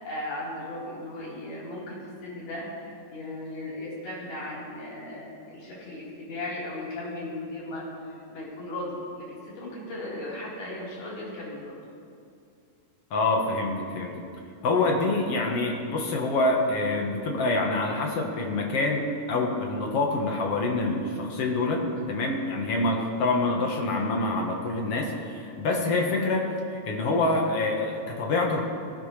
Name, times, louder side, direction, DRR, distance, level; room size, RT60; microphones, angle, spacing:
voice 1, 0.0-7.9 8.3-11.7, left 1 dB, 80° left, -8 dB, 6.0 m, -36 dB
voice 2, 13.1-14.2 14.6-28.6, left 2 dB, 60° left, 0 dB, 1.6 m, -26 dB
18.5 x 15.0 x 3.3 m, 2.5 s
omnidirectional pair, 4.3 m